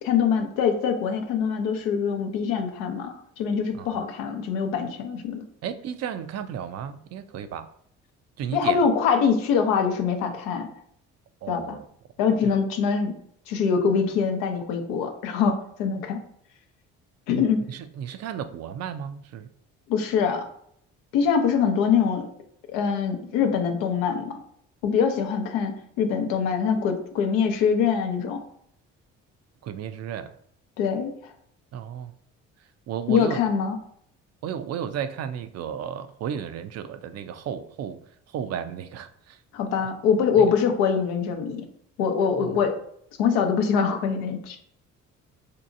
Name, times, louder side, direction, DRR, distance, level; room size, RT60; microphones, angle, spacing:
voice 1, 0.0-5.4 8.5-10.7 11.5-11.8 12.2-13.1 13.5-16.2 17.3-17.6 19.9-20.5 21.1-22.3 22.7-24.4 24.8-25.7 26.0-28.4 30.8-31.1 33.1-33.8 39.5-41.6 42.0-42.8 43.2-44.6, left 6 dB, 85° left, 5 dB, 0.7 m, -23 dB
voice 2, 5.6-7.7 8.4-8.8 11.4-11.9 12.4-12.6 17.3-19.5 29.6-30.3 31.7-32.1 32.9-33.4 34.4-38.0 38.3-39.4 40.4-40.5 42.4-42.5, right 8 dB, 50° right, 11 dB, 0.4 m, -33 dB
3.8 x 2.7 x 2.5 m, 0.67 s
supercardioid pair, 65°, 32 cm